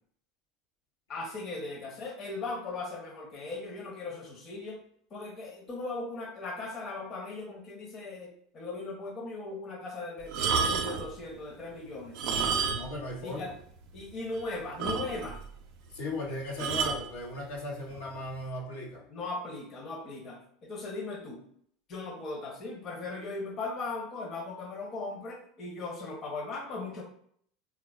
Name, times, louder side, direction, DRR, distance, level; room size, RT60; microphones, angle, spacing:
voice 1, 1.1-4.8 5.1-12.2 13.2-13.5 13.9-15.4 19.1-21.4 21.9-27.0, left 3 dB, 45° left, 0 dB, 0.8 m, -38 dB
sound 1, 10.3-11.1 12.1-13.1 13.3-13.4 14.0-14.1 14.3-14.4 14.8-15.4 16.6-17.1 17.9-18.1, right 5 dB, 65° right, 0.5 m, -30 dB
voice 2, 12.7-13.5 15.9-19.0, left 2 dB, 85° left, -4 dB, 0.8 m, -37 dB
3.7 x 2.3 x 2.3 m, 0.64 s
hypercardioid pair, 85°, 0 cm